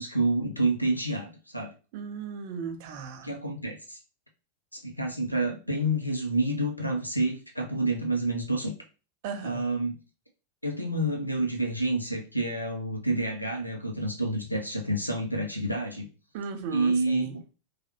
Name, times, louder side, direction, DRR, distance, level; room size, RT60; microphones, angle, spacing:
voice 1, 0.0-1.7 3.2-4.0 4.7-8.7 9.4-10.0 10.6-16.1 16.7-17.6, right 2 dB, 90° left, 3 dB, 0.5 m, -28 dB
voice 2, 1.9-3.3 9.2-9.7 16.3-17.4, right 6 dB, 50° right, 7 dB, 0.5 m, -36 dB
3.2 x 2.3 x 2.9 m, 0.33 s
figure-of-eight pair, 90°, 0 cm